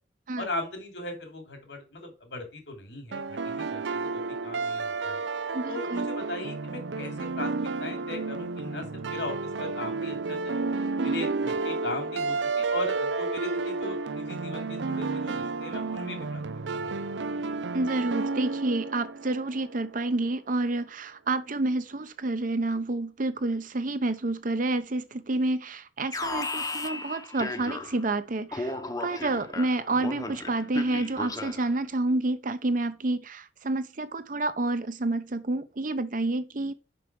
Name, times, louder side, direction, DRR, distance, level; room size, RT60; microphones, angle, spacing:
voice 1, 0.4-5.2 5.7-10.6 11.0-16.4 16.7-16.9, left 2 dB, 85° left, 3.2 m, -38 dB
sound 1, 3.1-20.0, right 4 dB, 90° right, 0.6 m, -31 dB
voice 2, 5.5-6.1 11.0-11.2 17.7-36.7, right 2 dB, 50° right, 0.8 m, -29 dB
Alarm, 26.1-28.1 28.5-31.8, left 2 dB, 20° left, 0.8 m, -35 dB
5.8 x 5.5 x 6.2 m
head